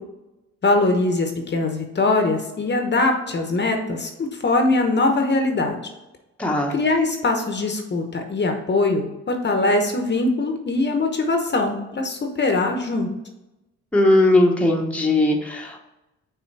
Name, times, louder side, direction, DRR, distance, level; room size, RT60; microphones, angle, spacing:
voice 1, 0.6-5.8 6.7-13.1, left 2 dB, 35° left, 4 dB, 0.9 m, -22 dB
voice 2, 6.4-6.7 13.9-15.8, left 1 dB, 5° left, 0 dB, 1.0 m, -18 dB
5.9 x 3.6 x 4.6 m, 0.97 s
cardioid pair, 90°, 30 cm